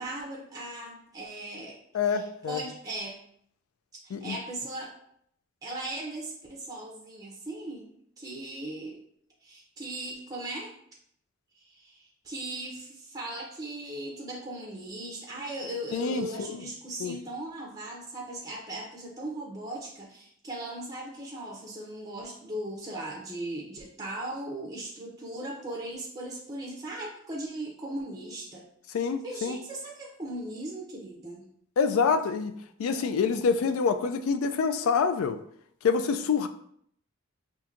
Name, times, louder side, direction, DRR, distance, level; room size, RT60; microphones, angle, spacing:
voice 1, 0.0-1.8 2.0-3.2 4.0-5.0 5.6-7.9 8.2-9.0 9.4-10.7 11.6-31.4 33.0-33.1, right 1 dB, 15° right, -2 dB, 0.5 m, -38 dB
voice 2, 1.9-2.6 4.1-4.4 15.9-16.6 17.0-17.2 28.9-29.6 31.8-32.5 32.8-35.4 35.8-36.5, left 5 dB, 85° left, 9 dB, 0.3 m, -26 dB
4.4 x 2.6 x 2.4 m, 0.67 s
head